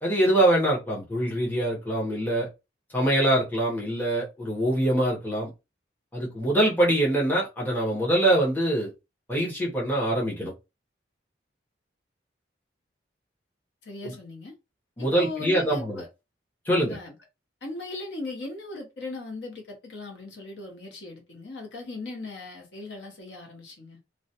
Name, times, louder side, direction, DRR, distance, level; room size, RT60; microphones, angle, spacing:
voice 1, 0.0-2.5 2.9-5.5 6.1-8.9 9.3-10.5 14.0-14.1 15.0-16.0 16.7-17.0, right 1 dB, 10° left, 0.8 m, -24 dB
voice 2, 13.8-14.5 15.0-16.1 16.7-17.2 17.6-24.0, left 2 dB, 70° left, 0.7 m, -38 dB
2.3 x 2.1 x 2.8 m
head